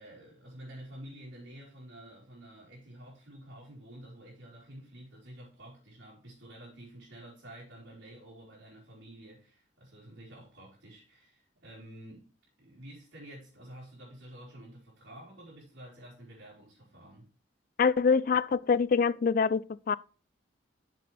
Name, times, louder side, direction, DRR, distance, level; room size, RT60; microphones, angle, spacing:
voice 1, 0.0-12.3 12.6-17.3, right 1 dB, 70° right, 3.6 m, -50 dB
voice 2, 17.8-20.0, left 5 dB, 45° left, 0.3 m, -25 dB
7.7 x 6.7 x 3.3 m
head